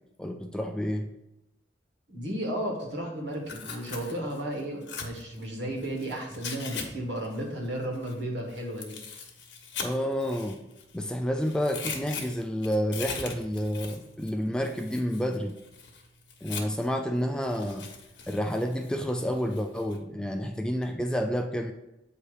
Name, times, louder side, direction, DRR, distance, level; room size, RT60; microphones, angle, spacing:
voice 1, 0.2-1.1 9.8-10.6 10.9-15.6 16.4-17.9 18.3-21.7, equal, 5° left, 4 dB, 0.3 m, -29 dB
voice 2, 2.1-9.0, right 1 dB, 80° right, 0 dB, 1.6 m, -34 dB
Tearing, 3.3-6.9 7.2-11.1 11.4-16.9 17.4-20.0, left 5 dB, 90° left, 1.1 m, -41 dB
8.1 x 2.9 x 4.8 m, 0.94 s
head